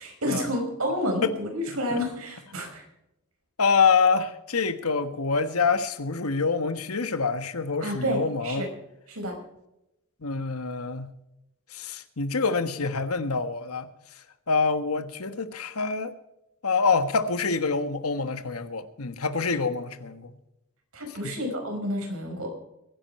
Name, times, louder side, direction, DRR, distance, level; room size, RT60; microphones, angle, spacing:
voice 1, 0.0-2.8 7.8-8.7 9.1-9.4 20.9-22.5, equal, 75° right, 5.3 m, -30 dB
voice 2, 3.6-8.7 10.2-11.1 11.7-13.9 14.5-16.1 16.6-20.3 21.2-21.3, left 4 dB, 75° left, 1.4 m, -26 dB
22.0 x 10.5 x 4.4 m
head